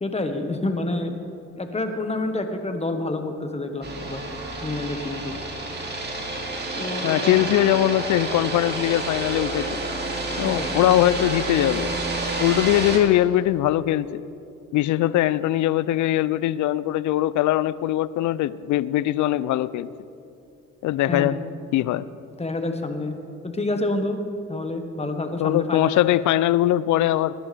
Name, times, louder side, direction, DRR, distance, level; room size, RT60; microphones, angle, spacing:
voice 1, 0.0-1.1 1.6-4.2 4.6-5.4 6.7-7.5 10.4-10.8 21.1-21.4 22.4-23.2 23.4-24.2 24.5-26.0, left 2 dB, 20° left, 6 dB, 1.3 m, -28 dB
sound 1, 3.8-13.0, right 2 dB, 35° right, 2.4 m, -29 dB
voice 2, 7.0-9.8 10.4-11.9 12.4-14.2 14.7-19.9 20.8-21.4 21.7-22.1 25.4-27.3, left 13 dB, 70° left, 18 dB, 0.5 m, -21 dB
19.5 x 11.0 x 3.4 m, 2.8 s
cardioid pair, 75°, 30 cm